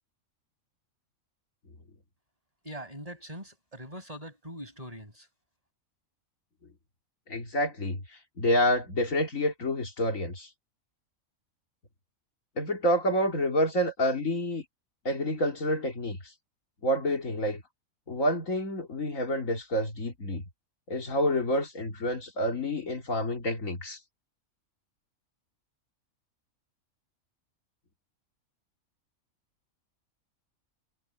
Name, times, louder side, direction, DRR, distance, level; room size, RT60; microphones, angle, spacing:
voice 1, 2.6-5.3, equal, 25° right, 5.9 m, -42 dB
voice 2, 7.3-8.0 8.4-10.5 12.6-14.6 15.0-16.2 16.8-17.6 18.1-20.4 20.9-24.0, equal, 70° left, 3.1 m, -28 dB
omnidirectional pair, 1.4 m